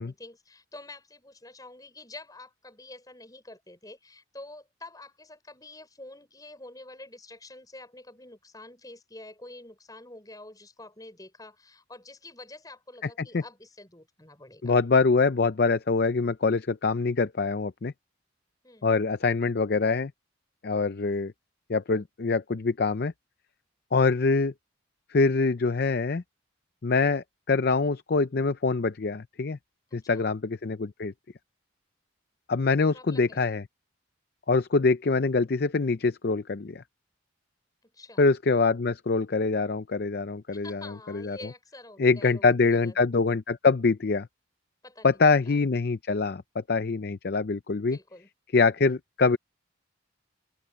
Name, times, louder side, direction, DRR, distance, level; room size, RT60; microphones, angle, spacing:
voice 1, 0.0-14.8 18.6-18.9 29.9-30.3 32.9-33.5 37.8-38.3 40.5-43.0 44.8-45.2 45.5-45.6 47.9-48.3, left 2 dB, 20° left, 6.0 m, -47 dB
voice 2, 14.6-17.9 18.8-20.1 20.6-21.3 21.7-23.1 23.9-24.5 25.1-26.2 26.8-29.6 29.9-31.1 32.5-33.6 34.5-36.8 38.2-41.4 42.0-44.3 45.0-48.0 48.5-49.4, left 4 dB, 50° left, 0.5 m, -24 dB
open air
head